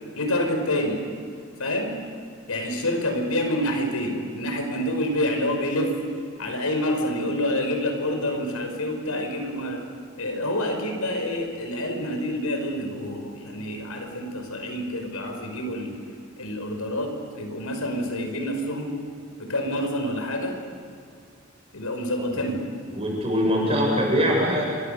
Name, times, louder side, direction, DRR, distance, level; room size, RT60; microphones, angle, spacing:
voice 1, 0.2-1.0 1.6-1.9 2.5-6.0 6.4-9.8 10.2-15.9 16.4-19.0 19.4-20.6 21.7-22.6, left 1 dB, 90° left, 4 dB, 5.5 m, -27 dB
voice 2, 22.9-24.6, equal, 25° right, -2 dB, 7.8 m, -22 dB
27.5 x 24.5 x 6.8 m, 2.2 s
head